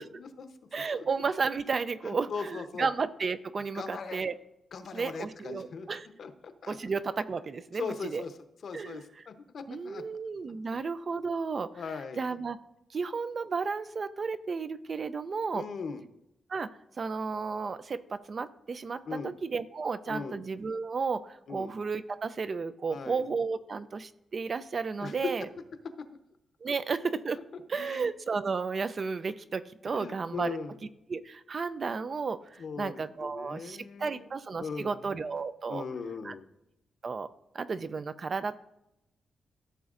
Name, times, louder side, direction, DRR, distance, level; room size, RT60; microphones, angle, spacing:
voice 1, 0.0-1.0 2.0-2.9 3.7-4.2 4.7-5.9 6.2-6.8 7.7-8.3 8.6-10.0 11.8-12.2 15.5-16.0 19.1-19.3 20.1-20.4 21.5-21.7 22.9-23.2 25.0-25.2 26.7-26.8 27.5-28.0 29.9-30.8 32.6-35.1 35.7-36.4, left 5 dB, 60° left, 8 dB, 0.8 m, -39 dB
voice 2, 0.7-4.3 4.9-6.1 6.7-8.2 8.7-9.0 9.7-11.7 12.2-12.6 12.9-15.7 16.5-25.5 26.6-27.4 27.7-30.6 31.1-35.8 36.2-36.3 37.0-37.3 37.5-38.6, right 4 dB, 40° right, 13 dB, 0.4 m, -33 dB
14.5 x 6.8 x 2.5 m, 0.87 s
cardioid pair, 120°, 0 cm